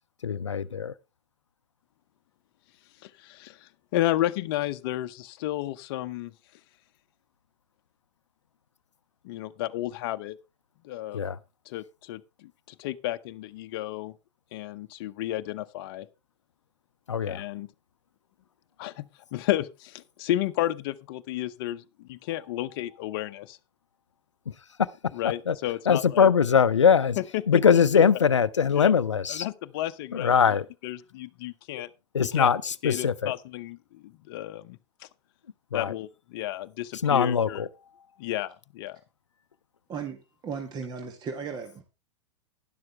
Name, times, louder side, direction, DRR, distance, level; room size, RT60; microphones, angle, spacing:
voice 1, 0.2-0.9 11.1-11.4 17.1-17.4 24.5-24.9 25.5-25.6 25.9-27.2 27.5-29.5 30.1-30.6 32.1-33.3 35.7-35.9 37.0-37.7, left 7 dB, 85° left, 0.6 m, -22 dB
voice 2, 3.0-6.3 9.2-10.4 10.8-11.2 11.7-14.2 14.5-16.1 17.3-17.7 18.8-23.6 25.1-26.3 27.2-28.0 28.7-28.9 29.3-30.3 30.8-31.9 32.4-32.5 32.8-35.1 35.7-37.6 38.2-39.0, left 14 dB, 50° left, 0.8 m, -32 dB
voice 3, 39.9-41.8, right 6 dB, 30° right, 1.6 m, -36 dB
12.0 x 11.0 x 3.3 m
figure-of-eight pair, 100°, 15 cm